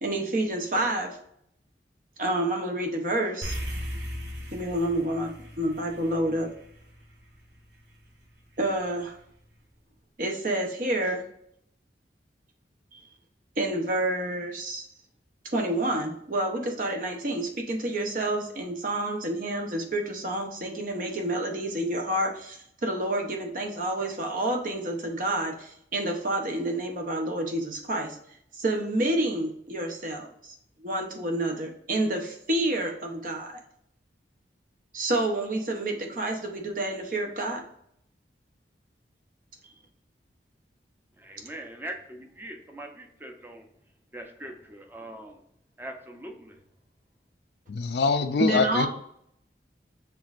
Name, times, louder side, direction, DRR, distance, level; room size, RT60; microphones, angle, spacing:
voice 1, 0.0-1.2 2.2-3.6 4.5-6.5 8.6-9.2 10.2-11.2 12.9-13.0 13.6-14.9 15.5-28.2 28.5-33.6 34.9-37.6 48.4-48.9, right 1 dB, 50° right, 0.8 m, -29 dB
sound 1, 3.4-7.9, equal, 70° right, 1.0 m, -37 dB
voice 2, 41.2-43.6 44.1-45.4 45.8-46.6, right 1 dB, 10° right, 0.6 m, -41 dB
voice 3, 47.7-48.9, left 4 dB, 70° left, 0.4 m, -24 dB
6.0 x 3.5 x 2.5 m
head